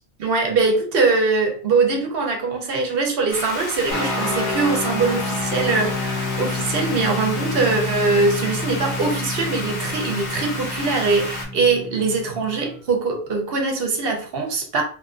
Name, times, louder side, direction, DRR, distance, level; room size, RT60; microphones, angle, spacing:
voice 1, 0.2-14.8, right 4 dB, 65° right, 0.9 m, -22 dB
sound 1, 3.3-11.4, left 2 dB, 85° left, 1.1 m, -31 dB
sound 2, 3.9-12.8, left 3 dB, 20° right, 0.5 m, -29 dB
2.6 x 2.4 x 2.3 m
omnidirectional pair, 1.1 m